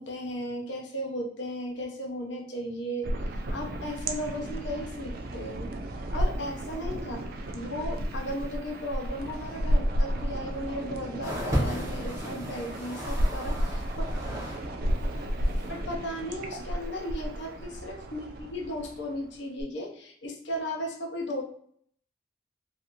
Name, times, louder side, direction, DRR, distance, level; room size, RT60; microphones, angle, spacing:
voice 1, 0.0-5.7 6.1-7.2 7.5-14.1 15.7-21.4, equal, 65° left, 1 dB, 0.6 m, -36 dB
sound 1, 3.0-19.6, equal, 50° right, 0.3 m, -32 dB
sound 2, 11.2-14.7 14.9-15.8 16.6-16.7, equal, 15° right, 0.6 m, -34 dB
2.5 x 2.4 x 2.8 m, 0.62 s
head